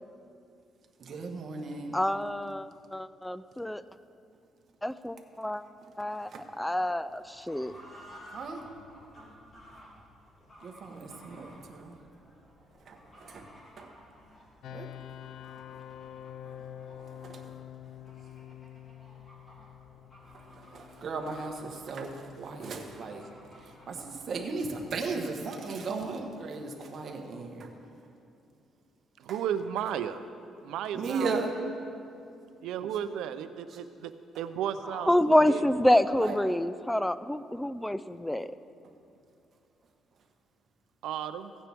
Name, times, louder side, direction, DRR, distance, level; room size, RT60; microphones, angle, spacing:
voice 1, 1.0-2.0 6.2-6.5 8.3-8.7 10.6-12.0 12.8-13.9 14.7-14.9 16.4-16.6 16.9-17.6 20.3-23.3 23.6-27.8 29.3-29.4 30.9-31.5 33.0-33.1 33.7-33.8 34.3-34.4 36.2-36.4 38.8-38.9, right 4 dB, 50° right, 2 dB, 1.2 m, -37 dB
voice 2, 1.9-3.8 4.8-5.6 6.0-6.3 6.6-7.7 34.9-38.5, left 1 dB, 5° left, 14 dB, 0.4 m, -27 dB
Fowl / Bird, 7.1-25.2, equal, 30° left, 3.1 m, -55 dB
sound 1, 14.6-27.4, left 10 dB, 75° left, 0.4 m, -49 dB
voice 3, 29.2-30.2 30.6-31.4 32.6-35.1 35.4-35.6 41.0-41.5, right 9 dB, 85° right, 11 dB, 0.5 m, -34 dB
16.0 x 8.9 x 3.5 m, 2.5 s
cardioid pair, 100°, 0 cm